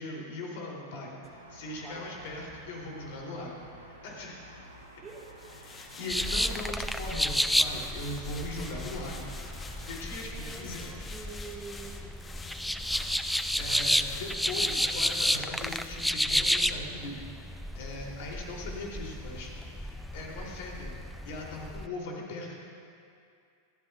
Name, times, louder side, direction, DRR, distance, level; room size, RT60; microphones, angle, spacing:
voice 1, 0.0-1.2 1.5-4.5 5.6-9.3 9.9-11.1 13.1-20.9 21.2-22.6, left 2 dB, 50° left, -2 dB, 3.4 m, -40 dB
sound 1, 1.2-10.0, right 1 dB, 80° right, 1.6 m, -51 dB
voice 2, 1.8-2.1 2.9-3.0 5.0-5.3 10.2-10.8 11.1-12.8, right 3 dB, 20° right, -1 dB, 1.9 m, -47 dB
sound 2, 5.1-16.7 17.0-17.2, left 3 dB, 15° left, 1.2 m, -47 dB
sound 3, 6.1-21.9, equal, ahead, 0.4 m, -31 dB
28.0 x 13.0 x 2.5 m, 2.4 s
figure-of-eight pair, 90°, 0 cm